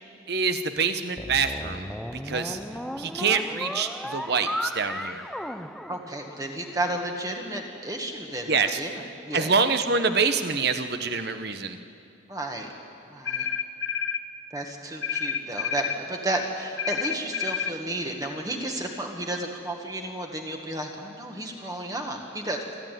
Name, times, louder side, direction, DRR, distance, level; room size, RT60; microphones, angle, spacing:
voice 1, 0.3-2.6 3.0-5.2 8.5-8.8 9.3-11.8, right 5 dB, 55° right, 9 dB, 1.0 m, -26 dB
sound 1, 1.2-6.6, equal, ahead, 0.4 m, -35 dB
voice 2, 5.9-9.5 12.3-12.7 13.1-13.5 14.5-22.6, right 1 dB, 20° right, 2 dB, 1.6 m, -32 dB
sound 2, 13.2-14.2 15.0-16.0 16.8-17.8, left 7 dB, 70° left, 0.9 m, -29 dB
26.5 x 12.5 x 9.2 m, 2.6 s
head